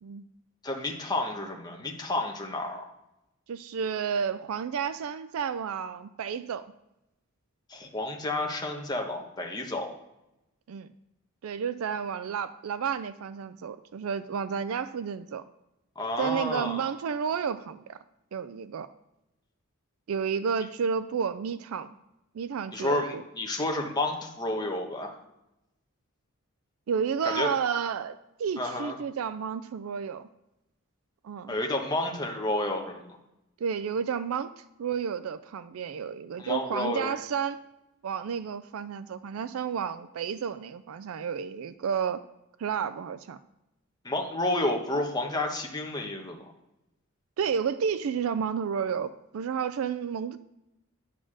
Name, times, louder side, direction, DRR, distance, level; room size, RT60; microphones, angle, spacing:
voice 1, 0.6-2.9 7.7-9.9 16.0-16.9 22.7-25.1 27.2-27.5 28.6-28.9 31.5-33.1 36.4-37.1 44.0-46.4, left 2 dB, 20° left, 2 dB, 1.1 m, -30 dB
voice 2, 3.5-6.6 10.7-10.9 11.4-15.4 16.2-18.0 18.3-18.9 20.1-21.9 22.3-23.2 26.9-30.3 31.2-31.6 33.6-37.6 38.0-42.2 42.6-43.4 47.4-50.4, right 7 dB, 70° right, 12 dB, 0.4 m, -31 dB
9.3 x 4.2 x 6.3 m, 0.92 s
head